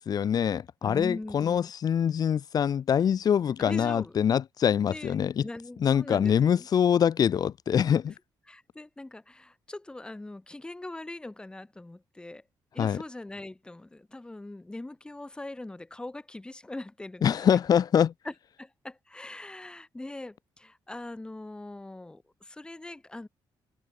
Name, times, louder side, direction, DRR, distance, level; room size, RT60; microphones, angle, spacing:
voice 1, 0.0-5.4 5.8-8.1 12.8-13.0 17.2-18.1, left 8 dB, 50° left, 2.4 m, -24 dB
voice 2, 0.8-1.7 3.6-4.2 4.9-6.7 8.5-12.4 12.7-17.4 18.2-23.3, left 2 dB, 10° left, 3.6 m, -41 dB
open air
cardioid pair, 145°, 9 cm